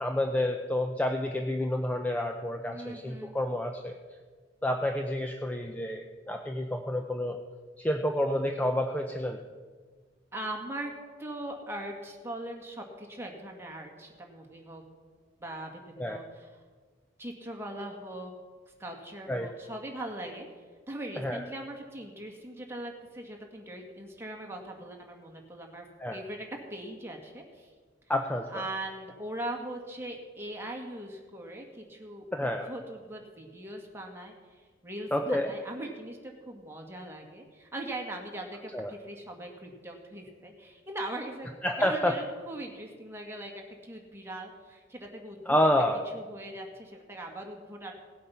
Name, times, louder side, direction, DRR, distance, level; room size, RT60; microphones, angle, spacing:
voice 1, 0.0-3.9 4.6-7.4 7.8-9.4 16.0-16.2 19.3-19.5 21.2-21.4 26.0-26.2 28.1-28.6 32.3-32.7 35.1-35.5 38.7-38.9 41.6-42.2 45.5-46.0, left 1 dB, 10° left, 3 dB, 0.6 m, -29 dB
voice 2, 2.7-3.4 10.3-10.9 11.2-14.8 15.4-16.5 17.2-18.3 18.8-20.5 20.9-25.9 26.1-27.7 28.5-41.5 41.8-45.6 46.1-47.9, right 1 dB, 15° right, 1 dB, 2.0 m, -40 dB
17.5 x 8.5 x 5.7 m, 1.5 s
head